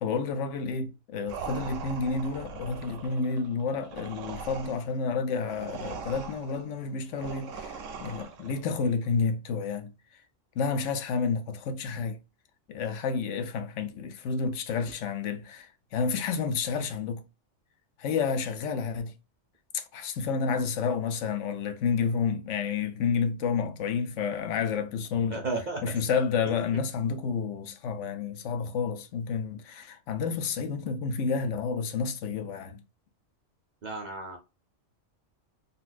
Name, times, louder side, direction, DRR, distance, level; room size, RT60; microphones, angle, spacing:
voice 1, 0.0-10.2 10.6-12.2 12.7-17.2 18.0-19.1 19.7-25.4 25.8-32.8, left 5 dB, 75° left, 0.9 m, -30 dB
sound 1, 1.3-8.7, right 5 dB, 90° right, 1.0 m, -41 dB
voice 2, 25.3-25.8 26.5-26.6 33.8-34.4, right 3 dB, 50° right, 0.5 m, -33 dB
4.0 x 2.2 x 2.4 m
omnidirectional pair, 1.3 m